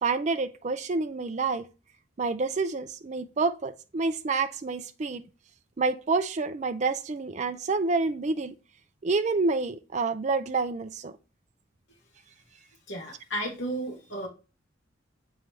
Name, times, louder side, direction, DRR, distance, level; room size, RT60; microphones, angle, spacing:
voice 1, 0.0-1.7 2.2-5.2 5.8-8.5 9.0-11.1, right 3 dB, 40° right, 0.4 m, -28 dB
voice 2, 12.9-14.3, right 1 dB, 75° left, 2.3 m, -33 dB
7.5 x 4.6 x 3.2 m
head